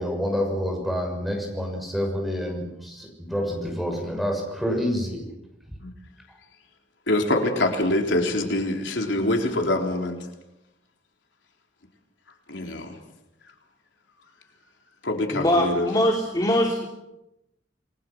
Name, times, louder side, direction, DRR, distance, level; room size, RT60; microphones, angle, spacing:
voice 1, 0.0-5.2, equal, ahead, 1 dB, 6.4 m, -28 dB
voice 2, 7.1-10.2 12.5-13.0 15.0-15.9, left 1 dB, 80° left, 2 dB, 3.8 m, -24 dB
voice 3, 15.3-16.9, left 1 dB, 20° left, 1 dB, 2.7 m, -22 dB
28.5 x 21.0 x 6.2 m, 0.90 s
head